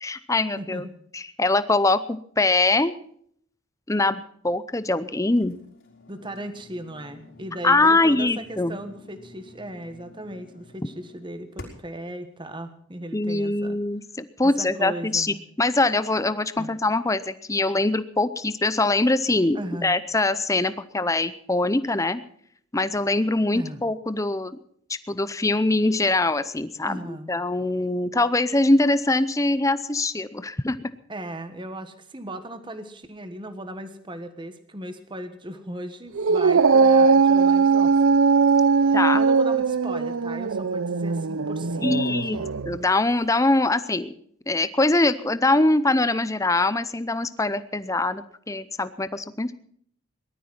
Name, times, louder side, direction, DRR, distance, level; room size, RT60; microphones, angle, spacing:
voice 1, 0.0-0.8 1.1-2.9 3.9-5.6 7.6-8.8 13.1-22.2 22.7-24.6 25.1-30.9 38.9-39.2 41.8-42.4 42.7-44.1 44.5-49.5, left 2 dB, 15° left, 14 dB, 0.6 m, -23 dB
voice 2, 0.6-0.9 6.1-13.8 14.4-15.4 16.6-16.7 19.5-19.9 23.5-23.8 26.8-27.3 31.1-38.0 38.8-42.5, right 1 dB, 20° right, 9 dB, 1.4 m, -37 dB
sound 1, 5.4-12.0, left 1 dB, 60° left, 4.3 m, -48 dB
Dog, 36.2-42.8, right 5 dB, 65° right, 0.5 m, -20 dB
19.0 x 12.5 x 5.8 m, 0.64 s
head